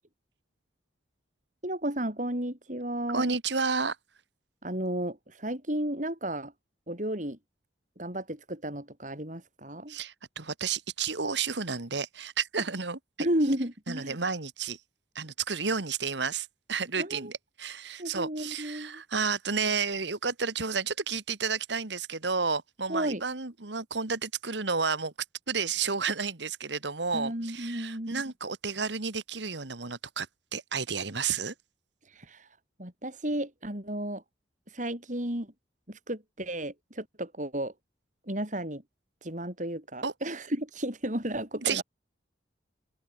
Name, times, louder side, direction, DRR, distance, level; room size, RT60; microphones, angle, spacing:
voice 1, 1.6-3.3 4.6-6.5 6.9-7.4 8.0-10.0 13.2-14.2 17.0-17.3 18.0-19.0 22.9-23.2 27.1-28.2 32.0-34.2 34.7-35.5 35.9-37.7 38.3-38.8 39.2-41.8, right 1 dB, 40° right, 5.2 m, -33 dB
voice 2, 3.1-4.0 9.9-13.0 13.9-14.8 15.2-25.1 25.5-30.3 30.5-31.5 40.0-40.1 41.6-41.8, right 5 dB, 70° right, 1.9 m, -31 dB
open air
head